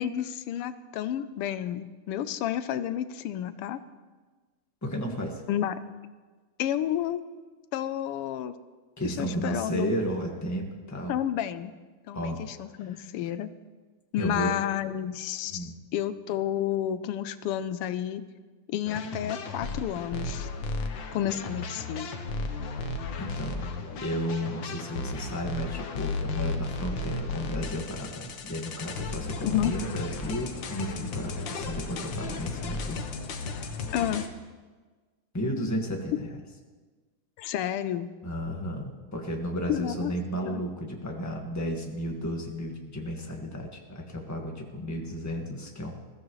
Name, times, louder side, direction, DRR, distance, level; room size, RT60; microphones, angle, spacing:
voice 1, 0.0-3.8 5.5-5.8 6.6-7.2 7.7-8.5 9.0-9.9 11.1-11.7 12.1-13.5 14.1-18.2 18.7-20.5 21.1-22.1 29.4-29.7 33.9-34.2 37.4-38.1 39.7-40.1 40.5-40.6, left 11 dB, 90° left, 12 dB, 1.6 m, -30 dB
voice 2, 4.8-5.4 9.0-11.1 12.1-12.4 12.8-12.9 14.2-14.6 15.5-15.7 23.2-23.6 24.0-33.0 35.3-36.3 38.2-45.9, equal, 10° left, 1 dB, 1.3 m, -33 dB
sound 1, 18.9-34.3, left 3 dB, 65° left, 1.7 m, -34 dB
21.0 x 14.0 x 3.2 m, 1.4 s
omnidirectional pair, 2.4 m